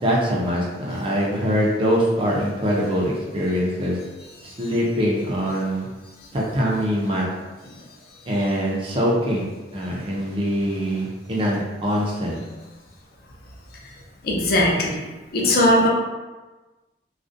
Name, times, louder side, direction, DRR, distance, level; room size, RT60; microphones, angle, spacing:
voice 1, 0.0-4.0 4.4-5.9 6.3-7.3 8.3-9.5 9.7-12.4, equal, 30° right, -4 dB, 0.4 m, -23 dB
voice 2, 14.2-15.0 15.3-15.9, left 1 dB, 55° left, -2 dB, 0.5 m, -19 dB
2.4 x 2.0 x 2.5 m, 1.2 s
head